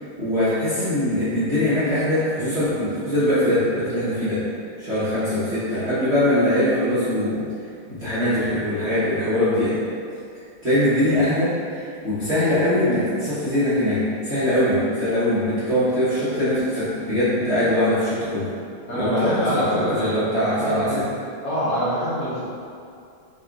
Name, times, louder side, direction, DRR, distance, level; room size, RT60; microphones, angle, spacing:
voice 1, 0.2-4.4 4.8-7.4 7.9-9.8 10.3-18.5 18.9-21.0, left 1 dB, 35° right, -14 dB, 1.2 m, -22 dB
voice 2, 18.9-21.1 21.4-22.4, equal, 55° left, -10 dB, 1.6 m, -25 dB
5.7 x 3.6 x 2.5 m, 2.4 s
omnidirectional pair, 2.3 m